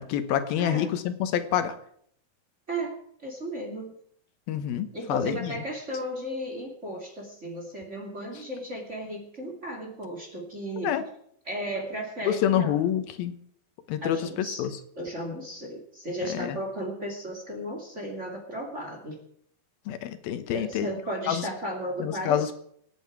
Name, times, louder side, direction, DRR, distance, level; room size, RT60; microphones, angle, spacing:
voice 1, 0.0-1.7 4.5-5.5 10.8-11.0 12.3-13.3 13.9-14.2 14.6-14.7 16.3-16.6 19.9-20.9 21.3-21.4 22.0-22.5, left 10 dB, 80° left, 10 dB, 2.9 m, -27 dB
voice 2, 0.6-0.9 2.7-3.9 4.9-10.9 11.4-12.8 14.0-14.7 15.0-19.2 20.5-22.5, right 1 dB, 20° right, 1 dB, 2.4 m, -35 dB
27.0 x 9.4 x 4.7 m, 0.66 s
omnidirectional pair, 4.2 m